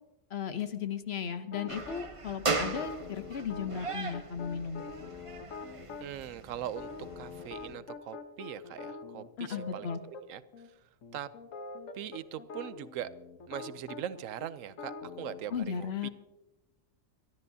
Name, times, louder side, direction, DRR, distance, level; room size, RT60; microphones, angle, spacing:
voice 1, 0.3-4.8 9.4-10.0 15.5-16.1, left 7 dB, 55° left, 10 dB, 1.0 m, -35 dB
sound 1, 1.5-2.0 2.6-6.1 6.7-10.2 10.5-10.7 11.0-15.6, left 4 dB, 80° left, 1.4 m, -44 dB
sound 2, 1.7-7.7, right 4 dB, 30° right, 0.8 m, -38 dB
voice 2, 6.0-10.4 11.1-11.3 11.9-13.1 13.5-16.1, right 10 dB, 90° right, 15 dB, 1.0 m, -41 dB
24.0 x 13.0 x 2.7 m, 1.0 s
omnidirectional pair, 1.3 m